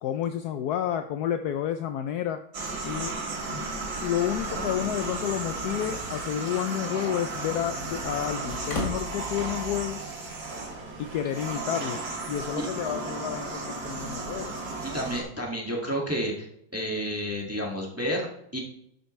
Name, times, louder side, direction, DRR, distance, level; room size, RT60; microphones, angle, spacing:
voice 1, 0.0-2.4 2.8-3.1 3.5-3.7 4.0-10.0 11.0-12.0 12.3-14.6, left 10 dB, 70° left, 8 dB, 0.9 m, -30 dB
sound 1, 2.5-15.2, right 3 dB, 70° right, 3.0 m, -34 dB
sound 2, 4.1-9.8, left 1 dB, 40° left, 2.2 m, -40 dB
voice 2, 14.8-16.5 16.7-18.6, equal, 10° right, -1 dB, 1.7 m, -30 dB
11.5 x 8.0 x 3.2 m, 0.76 s
omnidirectional pair, 2.1 m